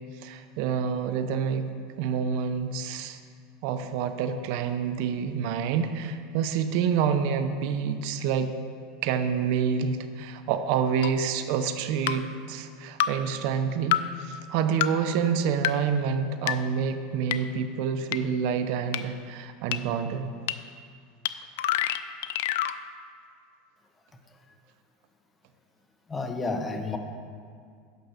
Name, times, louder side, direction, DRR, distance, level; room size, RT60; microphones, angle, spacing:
voice 1, 0.2-1.7 2.0-3.2 3.6-8.5 9.0-20.3, right 7 dB, 60° right, 8 dB, 0.7 m, -28 dB
sound 1, 11.0-11.1 12.1-12.2 13.0-13.1 13.9-14.0 14.8-14.9 15.6-15.7 16.5-16.6 17.3-17.4 18.1-18.2 18.9-19.0 19.7-19.8 20.5-20.6 21.3-21.4 21.6-22.8, left 13 dB, 80° left, 0.4 m, -25 dB
voice 2, 26.1-27.0, left 3 dB, 15° left, 5 dB, 0.9 m, -30 dB
9.2 x 6.0 x 6.5 m, 2.2 s
supercardioid pair, 130°, 0 cm